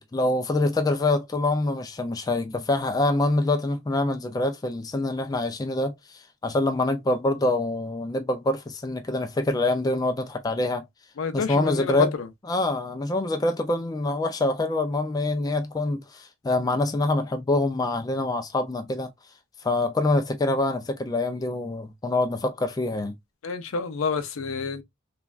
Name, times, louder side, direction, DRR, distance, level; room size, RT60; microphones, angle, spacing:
voice 1, 0.0-10.8 11.3-12.1 12.4-19.1 19.6-23.2, left 2 dB, 20° left, 0.3 m, -25 dB
voice 2, 11.2-12.1 23.4-24.8, left 4 dB, 70° left, 0.5 m, -28 dB
3.2 x 2.3 x 2.3 m
head